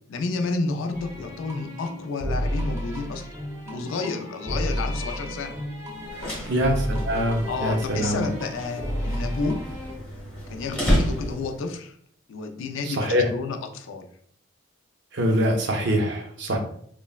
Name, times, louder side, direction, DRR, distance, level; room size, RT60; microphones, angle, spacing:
voice 1, 0.1-3.4 3.7-5.5 6.1-6.4 7.5-9.6 10.5-12.0 12.3-14.1, left 3 dB, 75° left, 5 dB, 0.4 m, -31 dB
sound 1, 0.9-9.9, equal, 15° right, 0.5 m, -32 dB
sound 2, 6.0-11.7, equal, 10° left, 0.9 m, -30 dB
voice 2, 6.5-8.3 12.8-13.3 15.1-16.6, equal, 60° right, 3 dB, 0.5 m, -24 dB
3.1 x 2.0 x 2.3 m, 0.65 s
head